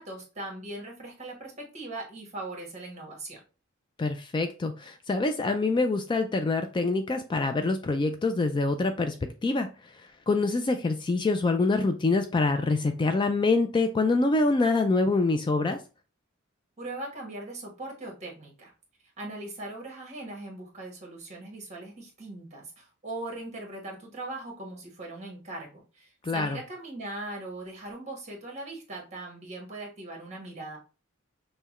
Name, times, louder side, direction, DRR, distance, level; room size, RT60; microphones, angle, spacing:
voice 1, 0.0-3.4 16.8-18.7 19.2-30.8, right 2 dB, 35° right, 0 dB, 1.3 m, -40 dB
voice 2, 4.0-15.8 26.2-26.6, left 3 dB, 25° left, 7 dB, 0.3 m, -25 dB
5.6 x 2.2 x 3.0 m, 0.33 s
head